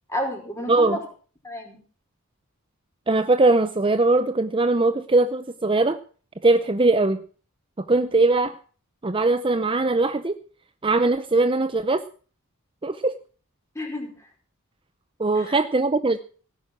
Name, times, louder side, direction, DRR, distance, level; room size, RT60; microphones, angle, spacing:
voice 1, 0.1-1.0 1.4-1.8 13.7-14.3 15.3-15.6, left 1 dB, 15° left, 1 dB, 5.0 m, -31 dB
voice 2, 0.7-1.0 3.1-6.0 6.4-7.2 7.9-8.6 9.0-10.4 10.8-12.0 12.8-13.1 15.2-16.2, right 2 dB, 25° right, 11 dB, 0.6 m, -20 dB
17.5 x 9.7 x 6.2 m, 0.41 s
head